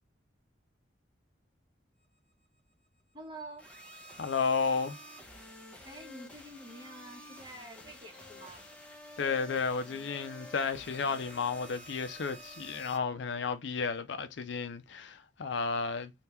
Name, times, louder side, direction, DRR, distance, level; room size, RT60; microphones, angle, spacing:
voice 1, 3.1-3.7 5.8-8.6, right 1 dB, 25° right, 1.2 m, -47 dB
sound 1, 3.6-13.0, equal, 5° left, 0.9 m, -50 dB
voice 2, 4.2-5.0 9.2-16.1, left 5 dB, 70° left, 0.5 m, -32 dB
3.6 x 2.4 x 4.3 m
head